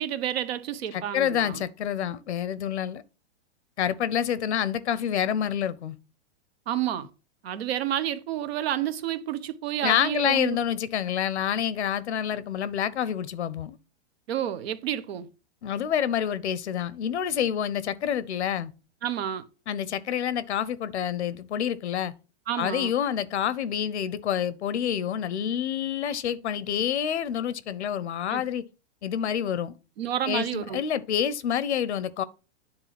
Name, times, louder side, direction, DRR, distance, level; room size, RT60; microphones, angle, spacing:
voice 1, 0.0-1.6 6.7-7.1 7.4-10.6 14.3-15.3 19.0-19.5 22.5-22.9 28.3-28.4 30.0-30.8, right 11 dB, 65° right, 1.0 m, -30 dB
voice 2, 0.9-3.0 3.8-5.9 9.8-13.8 15.6-18.7 19.7-22.1 22.6-28.6 29.0-29.7 30.3-32.2, left 9 dB, 85° left, 0.8 m, -28 dB
9.8 x 3.7 x 5.9 m
hypercardioid pair, 140°, 33 cm